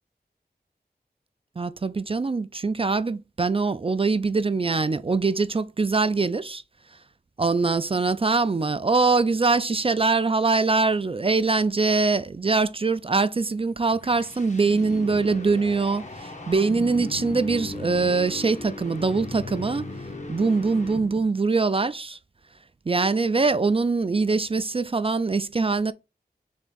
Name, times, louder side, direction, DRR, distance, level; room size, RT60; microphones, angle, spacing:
voice 1, 1.6-6.6 7.4-19.8 20.3-22.2 22.9-25.9, right 4 dB, 35° right, 0.3 m, -23 dB
sound 1, 13.6-21.4, left 2 dB, 45° left, 0.8 m, -37 dB
3.6 x 3.3 x 3.8 m
wide cardioid pair, 50°, 17 cm